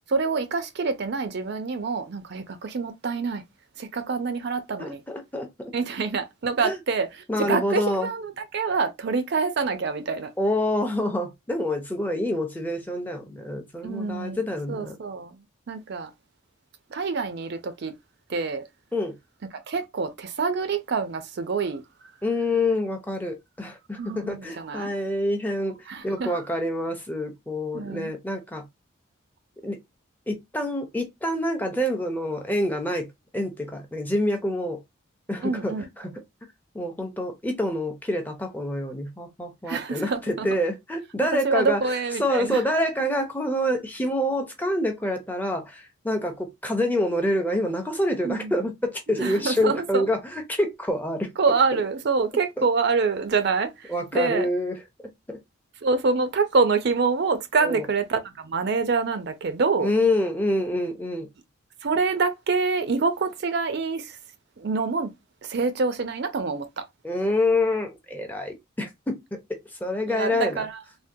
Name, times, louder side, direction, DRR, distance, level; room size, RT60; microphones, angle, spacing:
voice 1, 0.1-3.4 3.8-5.0 5.7-10.3 13.8-14.4 14.7-16.1 16.9-17.9 18.3-18.6 19.7-22.1 24.0-25.0 25.9-26.4 27.7-28.1 35.4-35.8 39.7-40.5 41.2-42.6 48.2-48.6 49.2-50.0 51.4-54.5 55.8-59.9 61.8-64.2 64.6-65.1 65.4-66.8 70.1-70.8, right 4 dB, 50° right, 0.4 m, -26 dB
voice 2, 4.8-5.5 6.6-6.8 7.3-8.1 10.4-15.0 18.9-19.2 22.2-28.6 29.6-29.8 30.3-34.8 35.3-36.1 36.7-41.8 42.2-51.3 52.6-52.7 53.9-55.4 57.6-57.8 59.8-61.3 67.0-70.6, left 1 dB, 10° left, 0.5 m, -27 dB
3.5 x 2.1 x 2.6 m
head